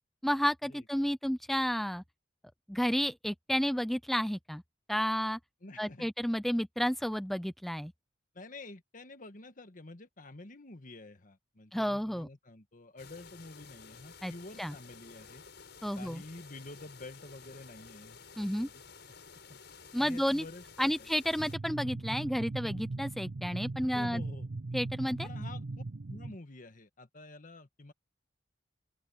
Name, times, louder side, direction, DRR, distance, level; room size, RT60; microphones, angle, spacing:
voice 1, 0.2-2.0 2.7-4.6 4.9-5.4 5.8-7.9 11.7-12.3 14.2-14.3 14.6-14.7 15.8-16.2 18.4-18.7 19.9-20.4 20.8-24.2 24.7-25.3, equal, ahead, 0.4 m, -31 dB
voice 2, 5.6-6.1 8.3-15.4 16.0-19.1 19.5-19.6 20.0-21.1 23.9-24.5 25.2-27.9, left 2 dB, 45° left, 1.6 m, -49 dB
sound 1, 13.0-21.6, left 5 dB, 65° left, 7.6 m, -53 dB
sound 2, 21.4-26.4, right 2 dB, 60° right, 0.6 m, -39 dB
open air
head